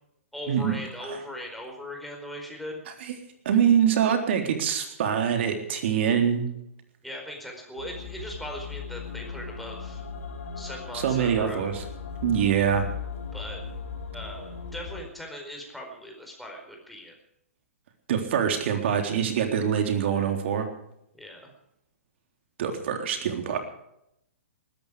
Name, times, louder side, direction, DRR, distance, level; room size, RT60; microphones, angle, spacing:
voice 1, 0.3-2.8 7.0-10.0 10.6-11.6 13.3-13.6 14.1-17.1 21.1-21.5, left 1 dB, ahead, 0 dB, 4.6 m, -39 dB
voice 2, 3.5-6.5 10.9-11.8 12.2-12.8 18.1-20.7 22.6-23.6, right 8 dB, 55° right, 5 dB, 3.7 m, -24 dB
sound 1, 7.8-15.0, left 5 dB, 70° left, 5.1 m, -38 dB
20.0 x 14.0 x 5.1 m, 0.78 s
hypercardioid pair, 130°, 8 cm